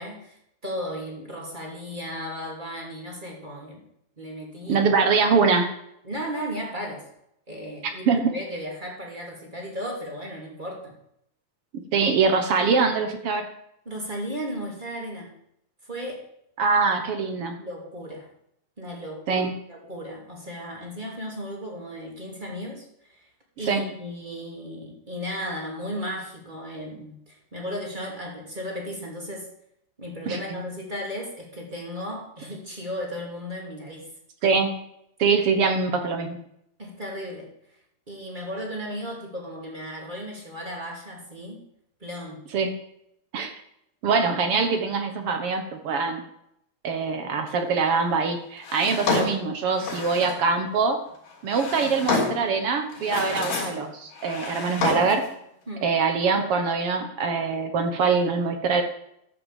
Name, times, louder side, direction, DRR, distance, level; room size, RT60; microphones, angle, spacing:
voice 1, 0.0-3.8 4.2-4.9 6.0-7.1 7.5-11.0 13.8-15.3 15.8-16.3 17.6-18.3 18.8-23.3 23.6-29.5 30.0-34.1 36.8-37.5 38.1-41.6 42.0-42.5 55.7-55.9, equal, 15° right, -1 dB, 2.4 m, -35 dB
voice 2, 4.7-5.7 8.1-8.2 11.9-13.5 16.6-17.6 19.3-19.5 23.7-23.8 30.3-30.4 34.4-34.7 35.2-36.4 42.5-42.7 43.3-43.5 44.0-46.2 46.8-51.0 51.4-55.2 55.8-58.8, right 5 dB, 60° right, 6 dB, 1.6 m, -23 dB
Drawer open or close, 48.6-50.5 51.3-52.5 52.9-53.8 54.1-55.3, left 4 dB, 70° left, 4.9 m, -29 dB
12.5 x 6.0 x 7.5 m, 0.75 s
omnidirectional pair, 3.8 m